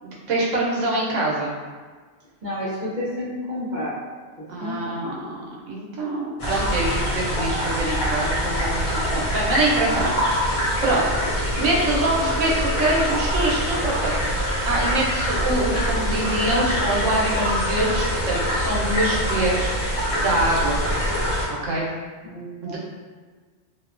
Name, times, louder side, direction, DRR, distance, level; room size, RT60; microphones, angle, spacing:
voice 1, 0.0-1.5 4.5-5.4 5.7-11.0 11.6-14.1 14.7-20.8 21.5-21.9 22.6-22.8, right 1 dB, 85° right, -4 dB, 1.0 m, -24 dB
voice 2, 2.4-3.9 4.6-5.0 22.2-22.8, left 1 dB, 50° right, -9 dB, 0.6 m, -30 dB
sound 1, 6.4-21.5, equal, 80° left, 1.1 m, -24 dB
2.6 x 2.1 x 2.4 m, 1.5 s
omnidirectional pair, 1.3 m